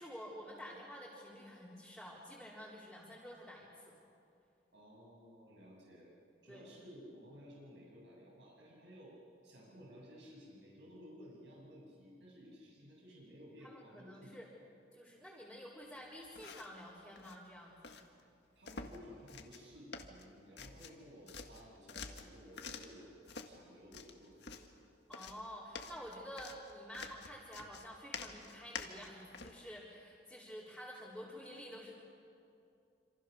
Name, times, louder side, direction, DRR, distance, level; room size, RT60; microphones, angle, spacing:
voice 1, 0.0-4.0 6.5-6.7 13.6-14.5 14.9-17.8 25.1-31.9, equal, ahead, -7 dB, 4.0 m, -50 dB
voice 2, 4.7-6.1 6.4-9.1 9.4-14.5 18.5-24.5, equal, 70° right, -4 dB, 7.5 m, -56 dB
sound 1, 16.2-16.8 17.1-17.4 17.8-18.0 18.6-19.0 19.3-19.7 19.9-21.0 21.3-23.0 23.3-23.5 23.9-24.7 25.1-29.6, left 5 dB, 65° left, 1.8 m, -48 dB
27.5 x 27.0 x 6.7 m, 2.5 s
head